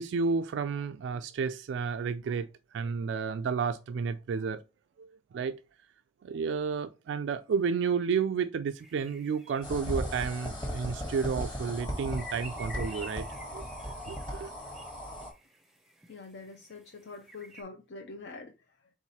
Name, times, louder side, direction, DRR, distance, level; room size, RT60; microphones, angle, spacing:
voice 1, 0.0-4.6 5.0-5.6 6.2-13.3 13.5-13.7 14.1-14.5, right 5 dB, 80° right, 0.3 m, -31 dB
sound 1, 8.8-17.6, left 1 dB, ahead, 0.6 m, -51 dB
sound 2, 9.6-15.3, equal, 25° left, 1.2 m, -37 dB
voice 2, 16.1-18.9, left 3 dB, 65° left, 0.5 m, -45 dB
4.6 x 3.6 x 2.8 m
head